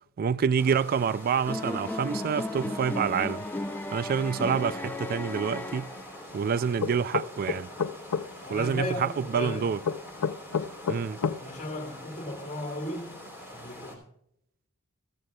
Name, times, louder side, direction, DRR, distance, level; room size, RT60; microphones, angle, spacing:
voice 1, 0.2-3.4 3.9-5.9 6.3-7.7 8.5-9.8 10.9-11.2, right 6 dB, 40° right, 0.3 m, -27 dB
sound 1, 0.6-14.0, left 1 dB, 10° right, 3.0 m, -45 dB
sound 2, 1.5-6.4, left 1 dB, 10° left, 0.5 m, -35 dB
sound 3, 6.8-8.3 9.8-11.4, left 6 dB, 90° left, 0.6 m, -28 dB
voice 2, 8.4-9.7 11.4-14.0, left 2 dB, 35° left, 1.8 m, -36 dB
15.0 x 14.5 x 2.3 m
head